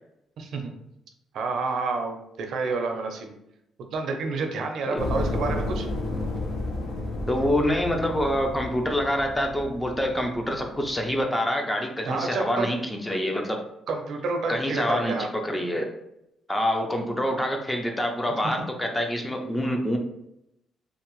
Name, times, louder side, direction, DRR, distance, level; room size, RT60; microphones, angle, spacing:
voice 1, 0.4-0.7 1.3-3.3 3.9-5.9 12.0-12.7 13.9-15.3, right 3 dB, 70° right, 4 dB, 0.4 m, -29 dB
sound 1, 5.0-11.2, left 2 dB, 70° left, 0.6 m, -32 dB
voice 2, 7.3-13.6 14.5-15.9 16.5-20.0, equal, 15° left, 3 dB, 0.5 m, -26 dB
2.6 x 2.0 x 3.0 m, 0.82 s
cardioid pair, 90°, 0 cm